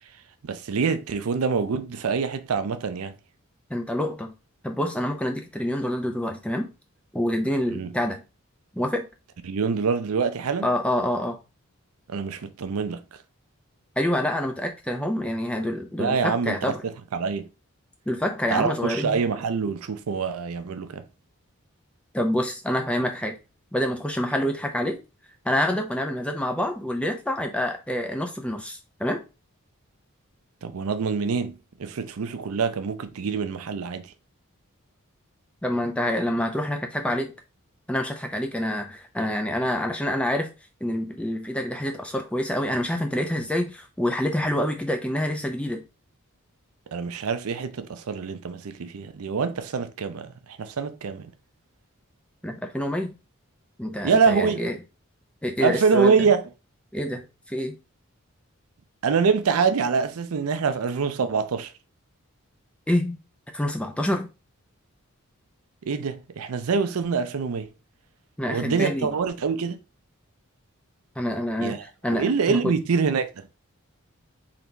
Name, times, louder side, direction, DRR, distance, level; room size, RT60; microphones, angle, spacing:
voice 1, 0.4-3.1 7.7-7.9 9.4-10.7 12.1-13.0 16.0-17.5 18.5-21.0 30.6-34.1 46.9-51.3 54.0-54.6 55.6-56.4 59.0-61.7 65.8-67.7 68.5-69.8 71.6-71.8 72.1-73.5, right 5 dB, 85° right, 0.5 m, -25 dB
voice 2, 3.7-4.3 4.6-6.7 7.1-8.2 8.7-9.1 10.6-11.4 14.0-16.8 18.1-19.2 22.1-23.4 23.7-25.0 25.5-29.2 35.6-37.3 37.9-40.5 40.8-45.8 52.4-53.1 53.8-54.8 55.4-56.2 56.9-57.8 62.9-63.2 63.5-64.3 68.4-69.1 71.2-72.7, left 1 dB, 5° left, 0.5 m, -27 dB
3.9 x 2.9 x 3.3 m
head